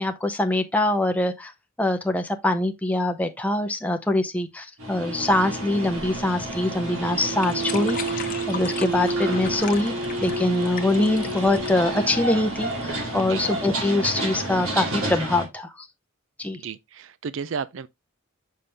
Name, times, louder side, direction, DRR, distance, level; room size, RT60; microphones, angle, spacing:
voice 1, 0.0-1.5 1.8-9.9 10.2-15.9 16.4-16.6, left 1 dB, 5° left, 0.5 m, -24 dB
sound 1, 4.8-15.5, right 1 dB, 85° right, 3.3 m, -29 dB
sound 2, 5.9-12.9, left 7 dB, 40° left, 0.9 m, -38 dB
voice 2, 16.5-17.9, right 6 dB, 60° right, 0.4 m, -33 dB
6.9 x 5.5 x 3.3 m
head